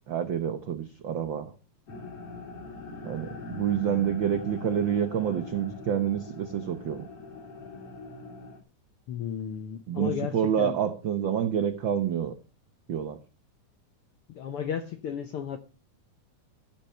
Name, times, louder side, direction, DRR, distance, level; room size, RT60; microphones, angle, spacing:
voice 1, 0.1-1.5 3.0-7.0 9.9-12.3 12.9-13.2, right 9 dB, 85° right, 1.0 m, -28 dB
sound 1, 1.9-8.6, left 3 dB, 45° left, 3.7 m, -42 dB
voice 2, 9.1-10.8 14.3-15.6, left 8 dB, 75° left, 1.3 m, -34 dB
15.0 x 7.5 x 5.6 m
omnidirectional pair, 3.6 m